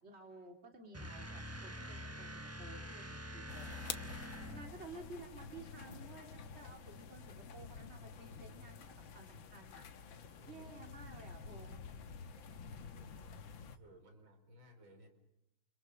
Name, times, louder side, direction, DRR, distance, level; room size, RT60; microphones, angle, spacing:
voice 1, 0.0-9.9 10.4-11.8, right 3 dB, 30° right, 4 dB, 3.5 m, -54 dB
sound 1, 0.9-4.9, equal, 10° right, 0.8 m, -46 dB
sound 2, 3.5-13.8, left 6 dB, 70° left, 2.1 m, -49 dB
voice 2, 4.3-4.6 10.2-10.9 12.7-13.2 13.7-15.1, left 1 dB, 70° right, 5 dB, 5.3 m, -60 dB
30.0 x 29.0 x 5.2 m, 0.84 s
omnidirectional pair, 2.2 m